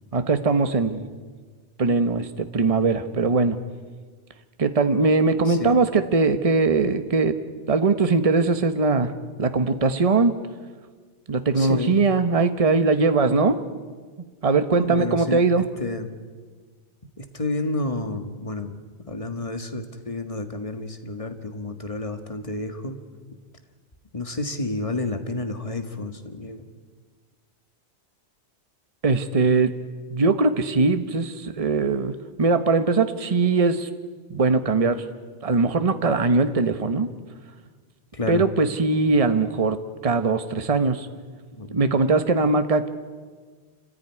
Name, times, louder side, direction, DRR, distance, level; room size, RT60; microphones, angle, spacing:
voice 1, 0.1-1.1 1.8-3.6 4.6-7.3 7.7-9.1 9.4-10.3 11.3-13.6 14.4-15.6 29.0-29.7 30.1-32.1 32.4-33.9 34.3-35.0 35.4-37.1 38.3-39.8 40.0-41.1 41.7-42.9, right 3 dB, 35° right, 9 dB, 1.2 m, -21 dB
voice 2, 11.6-11.9 14.7-15.4 15.8-16.1 17.2-18.8 19.1-23.0 24.1-26.7 38.1-38.4 41.5-41.8, left 2 dB, 30° left, 7 dB, 1.9 m, -30 dB
27.5 x 15.5 x 9.8 m, 1.5 s
omnidirectional pair, 1.2 m